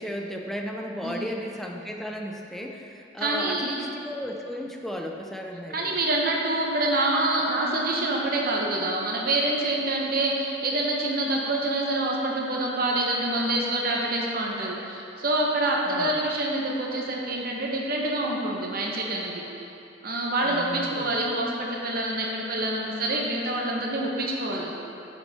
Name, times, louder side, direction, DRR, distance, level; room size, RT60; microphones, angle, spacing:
voice 1, 0.0-6.0 15.9-16.2 20.4-21.1, equal, ahead, 1 dB, 0.5 m, -35 dB
voice 2, 3.2-3.8 5.7-19.4 20.0-24.7, right 2 dB, 50° right, -2 dB, 1.0 m, -26 dB
9.8 x 5.2 x 3.5 m, 2.8 s
head